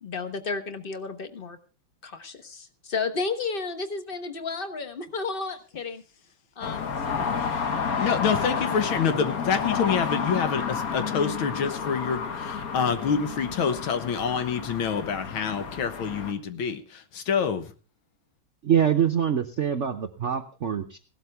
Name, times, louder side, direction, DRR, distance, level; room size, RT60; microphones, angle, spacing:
voice 1, 0.0-1.6 2.0-6.0 6.6-7.4, left 4 dB, 35° left, 8 dB, 1.1 m, -32 dB
sound 1, 6.6-16.3, left 6 dB, 50° left, 1.6 m, -30 dB
voice 2, 8.0-17.7, left 6 dB, 80° left, 9 dB, 2.0 m, -27 dB
voice 3, 18.6-21.0, right 8 dB, 60° right, 5 dB, 0.7 m, -24 dB
17.0 x 12.5 x 3.5 m, 0.36 s
omnidirectional pair, 2.2 m